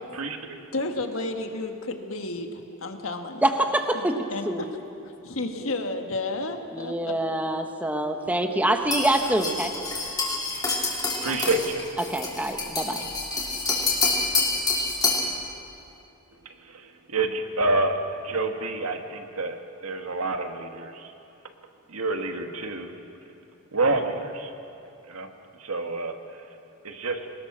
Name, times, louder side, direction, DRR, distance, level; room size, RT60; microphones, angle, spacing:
voice 1, 0.7-3.5 3.9-4.7 5.1-6.9 7.3-7.4, left 2 dB, 65° left, 5 dB, 1.6 m, -32 dB
voice 2, 3.4-4.7 6.7-9.7 11.3-11.4 12.1-13.1, right 1 dB, 5° right, 5 dB, 1.1 m, -25 dB
sound 1, 8.9-15.3, left 3 dB, 20° left, 3.4 m, -27 dB
voice 3, 11.2-11.8 17.1-18.0 18.2-19.6 19.8-20.9 21.9-22.9 23.7-24.5 25.1-25.3 25.6-26.1 26.8-27.2, right 2 dB, 80° right, 5 dB, 1.6 m, -27 dB
22.0 x 19.5 x 6.2 m, 2.7 s
head